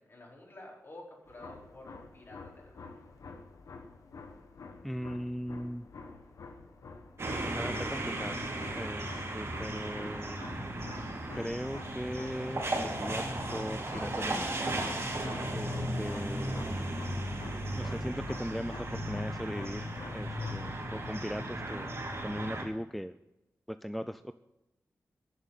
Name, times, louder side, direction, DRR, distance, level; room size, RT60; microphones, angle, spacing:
voice 1, 0.0-2.9, left 1 dB, 45° left, -3 dB, 4.7 m, -51 dB
sound 1, 1.3-20.7, left 4 dB, 75° left, 1.2 m, -49 dB
voice 2, 4.8-5.9 7.5-8.4 8.8-10.5 11.3-13.2 13.5-14.6 15.5-16.9 17.7-21.9 22.2-23.2 23.7-24.3, equal, ahead, 12 dB, 0.4 m, -39 dB
sound 2, 7.2-22.6, right 1 dB, 50° right, 4.0 m, -36 dB
10.5 x 7.3 x 9.1 m, 0.93 s
cardioid pair, 65°, 6 cm